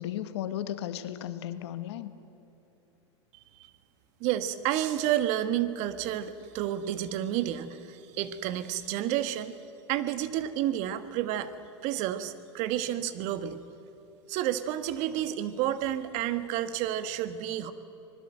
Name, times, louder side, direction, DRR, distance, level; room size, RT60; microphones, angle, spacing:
voice 1, 0.0-2.1, left 11 dB, 70° left, 11 dB, 1.4 m, -35 dB
voice 2, 4.2-9.6 9.9-11.5 11.8-13.6 14.3-17.7, right 12 dB, 50° right, 11 dB, 1.4 m, -30 dB
26.0 x 20.0 x 7.9 m, 2.9 s
hypercardioid pair, 100°, 15 cm